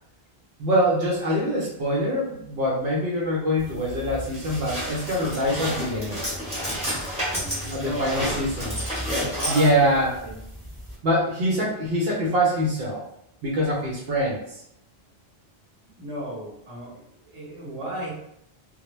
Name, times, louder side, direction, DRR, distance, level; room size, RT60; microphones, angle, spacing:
voice 1, 0.6-6.2 7.7-8.8 9.5-10.1 11.0-13.0 13.4-14.6, equal, 70° right, -4 dB, 0.8 m, -24 dB
sound 1, 3.6-10.9, equal, 5° right, 0.8 m, -31 dB
voice 2, 7.3-8.5 9.3-10.4 15.9-18.1, right 1 dB, 35° right, -6 dB, 0.9 m, -35 dB
2.1 x 2.0 x 3.0 m, 0.76 s
omnidirectional pair, 1.0 m